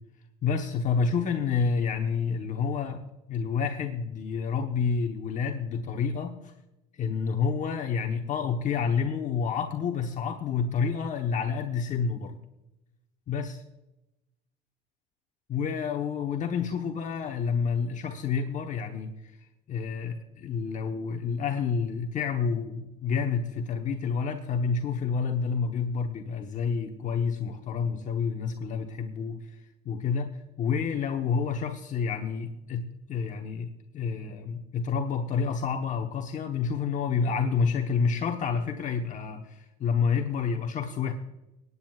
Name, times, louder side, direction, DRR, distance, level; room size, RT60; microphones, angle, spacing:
voice 1, 0.4-3.0 3.3-6.5 6.9-12.4 13.3-13.6 15.5-19.1 19.7-30.3 30.6-41.1, left 5 dB, 40° left, 4 dB, 1.0 m, -29 dB
24.5 x 9.6 x 2.4 m, 0.96 s
supercardioid pair, 105°, 19 cm